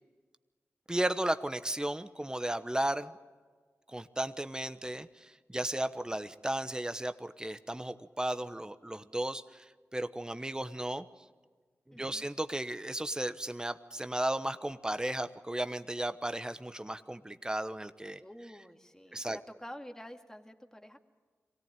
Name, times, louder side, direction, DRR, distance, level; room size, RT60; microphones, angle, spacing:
voice 1, 0.9-3.1 3.9-11.1 11.9-18.2 19.1-19.4, right 1 dB, 15° right, 11 dB, 1.0 m, -35 dB
voice 2, 11.9-12.3 18.2-21.0, equal, 10° left, 4 dB, 2.2 m, -48 dB
23.5 x 17.5 x 9.1 m, 1.5 s
cardioid pair, 45°, 5 cm